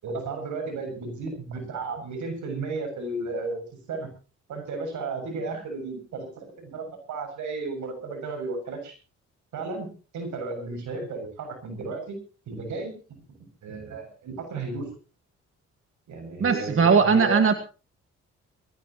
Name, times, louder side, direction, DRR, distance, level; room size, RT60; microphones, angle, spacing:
voice 1, 0.0-4.1 4.5-8.9 9.5-9.9 10.1-12.2 12.5-13.0 13.3-14.9 16.1-17.4, right 3 dB, 80° right, 5 dB, 7.3 m, -34 dB
voice 2, 16.4-17.5, right 5 dB, 45° right, 7 dB, 1.9 m, -19 dB
22.0 x 17.0 x 3.1 m, 0.36 s
cardioid pair, 65°, 29 cm